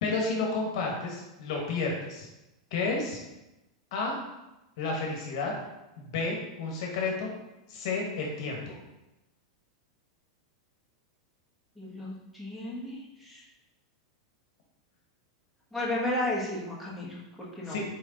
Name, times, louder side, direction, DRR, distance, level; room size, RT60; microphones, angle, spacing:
voice 1, 0.0-2.3 2.7-3.2 3.9-4.2 4.8-5.5 6.0-7.3 7.7-8.8 17.7-17.8, left 3 dB, 65° left, 0 dB, 0.9 m, -31 dB
voice 2, 11.8-13.4 15.7-17.8, left 1 dB, ahead, -5 dB, 1.3 m, -33 dB
4.2 x 3.3 x 3.8 m, 0.97 s
hypercardioid pair, 120°, 3 cm